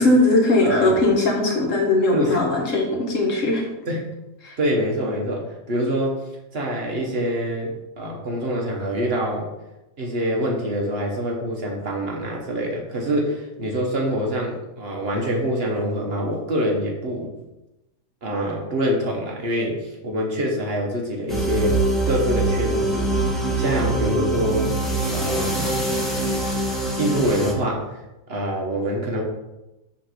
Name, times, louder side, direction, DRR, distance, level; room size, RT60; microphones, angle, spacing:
voice 1, 0.0-3.6 4.4-4.5, left 2 dB, 50° left, 0 dB, 1.5 m, -19 dB
voice 2, 0.6-0.9 2.1-2.4 3.9-4.1 4.6-6.2 6.5-9.5 10.0-17.3 18.2-21.8 22.1-23.1 23.5-24.7 25.1-25.7 27.0-28.0 28.3-29.2, equal, 45° right, 0 dB, 1.0 m, -25 dB
sound 1, 21.3-27.5, right 2 dB, ahead, 0.7 m, -23 dB
5.7 x 3.2 x 5.7 m, 0.99 s
omnidirectional pair, 1.8 m